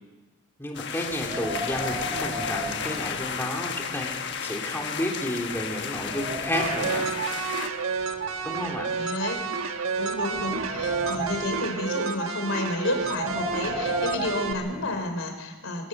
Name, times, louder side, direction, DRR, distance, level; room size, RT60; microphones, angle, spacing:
voice 1, 0.6-4.1 4.4-7.4 8.4-8.9, left 1 dB, 10° left, 0 dB, 3.0 m, -31 dB
sound 1, 0.7-7.7, left 7 dB, 55° left, 1.3 m, -33 dB
Wind, 1.1-3.7 4.1-4.2 4.9-5.0 5.5-7.1 7.9-9.5 10.0-11.6 12.9-15.0, equal, 30° right, 3.8 m, -36 dB
sound 2, 6.5-14.5, right 5 dB, 85° right, 1.4 m, -30 dB
voice 2, 8.9-9.4 10.0-15.9, left 2 dB, 75° left, 5 dB, 3.8 m, -31 dB
24.0 x 13.5 x 7.9 m, 1.2 s
head